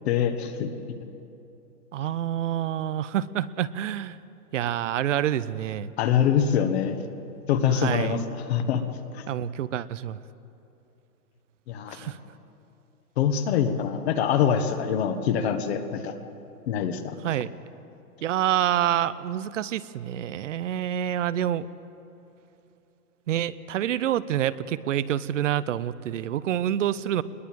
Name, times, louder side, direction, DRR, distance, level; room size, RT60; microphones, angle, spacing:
voice 1, 0.0-0.7 6.0-7.0 7.5-8.8 9.1-9.2 11.7-12.1 13.2-16.1 16.7-17.2, left 8 dB, 45° left, 7 dB, 1.4 m, -24 dB
voice 2, 1.9-4.2 4.5-5.9 7.7-8.2 9.3-10.2 11.9-12.2 17.2-17.5 18.2-21.7 23.3-27.2, right 11 dB, 55° right, 17 dB, 0.8 m, -27 dB
21.0 x 21.0 x 7.5 m, 2.8 s
hypercardioid pair, 155°, 46 cm